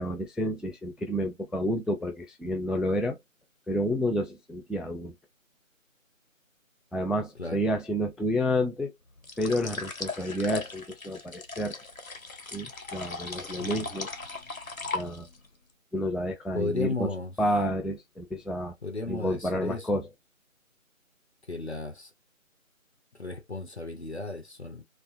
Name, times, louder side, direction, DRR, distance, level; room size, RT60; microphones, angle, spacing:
voice 1, 0.0-3.2 3.7-5.1 6.9-8.9 9.4-11.8 12.5-14.1 14.9-15.3 15.9-17.1 17.4-18.7 19.1-20.1, equal, ahead, 0.3 m, -30 dB
sound 1, 9.2-15.5, left 3 dB, 90° left, 0.9 m, -38 dB
voice 2, 13.6-13.9 16.5-17.3 18.8-20.0 21.5-22.1 23.2-24.8, left 3 dB, 55° left, 0.6 m, -34 dB
2.4 x 2.4 x 2.5 m
figure-of-eight pair, 180°, 41 cm